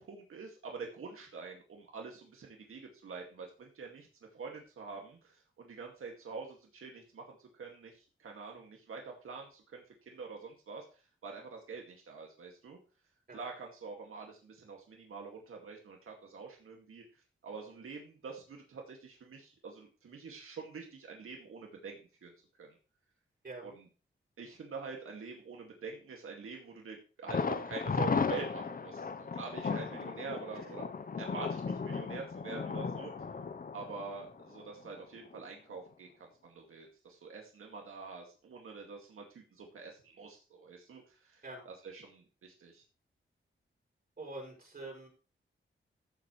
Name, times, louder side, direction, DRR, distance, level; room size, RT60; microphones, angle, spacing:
voice 1, 0.0-4.1 4.3-10.8 11.2-12.8 13.3-22.3 22.6-22.8 23.6-23.9 24.4-30.9 31.2-33.1 33.7-42.8, right 4 dB, 85° right, 0 dB, 2.2 m, -46 dB
Thunder, 27.3-35.0 35.3-35.4 35.9-36.0, left 5 dB, 40° left, 0.8 m, -36 dB
voice 2, 44.2-45.1, right 2 dB, 45° right, -2 dB, 6.4 m, -45 dB
14.5 x 7.5 x 3.2 m, 0.35 s
wide cardioid pair, 95°, 21 cm